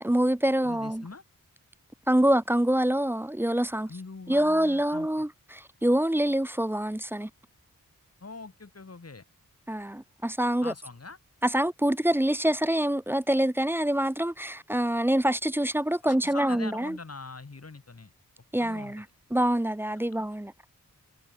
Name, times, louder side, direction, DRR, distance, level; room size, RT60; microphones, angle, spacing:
voice 1, 0.0-1.0 2.1-3.9 4.3-7.3 9.7-10.7 11.4-17.0 18.5-19.0 19.3-20.5, right 1 dB, 5° right, 0.5 m, -25 dB
voice 2, 0.6-1.2 3.9-5.1 8.2-9.2 10.6-11.2 16.0-18.1 18.6-18.9, left 3 dB, 45° left, 4.8 m, -43 dB
wide cardioid pair, 65°, 34 cm